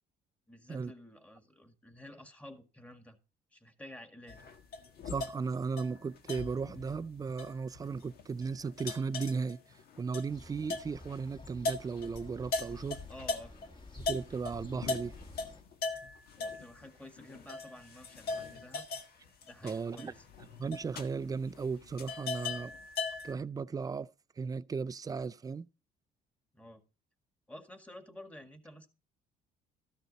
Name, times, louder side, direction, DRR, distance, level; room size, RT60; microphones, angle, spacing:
voice 1, 0.5-3.2 3.5-4.4 13.1-13.6 16.4-18.9 19.4-20.3 26.5-26.8 27.5-28.9, left 1 dB, 5° left, 1.9 m, -51 dB
sound 1, 4.3-13.7 14.0-23.3, left 3 dB, 65° left, 1.7 m, -40 dB
voice 2, 5.1-9.6 10.0-13.0 14.0-15.1 19.6-20.1 20.6-22.7 23.2-24.1 24.4-25.7, right 5 dB, 20° right, 0.4 m, -36 dB
sound 2, 10.3-15.6, left 2 dB, 30° left, 1.8 m, -51 dB
13.5 x 6.5 x 4.1 m
cardioid pair, 110°, 17 cm